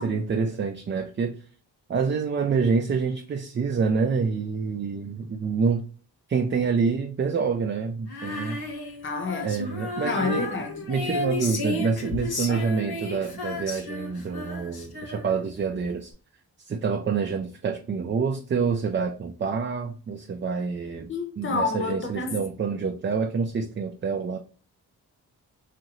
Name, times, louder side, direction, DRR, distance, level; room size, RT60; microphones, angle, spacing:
voice 1, 0.0-1.3 1.9-5.8 6.3-8.6 9.4-10.5 10.9-16.1 16.6-24.4, right 5 dB, 30° right, 0.4 m, -27 dB
Female singing, 8.1-15.5, left 2 dB, 65° left, 1.1 m, -33 dB
voice 2, 9.0-9.5 10.0-10.8 12.5-12.7 21.1-22.4, left 4 dB, 30° left, 0.8 m, -29 dB
2.7 x 2.5 x 3.0 m
supercardioid pair, 45°, 41 cm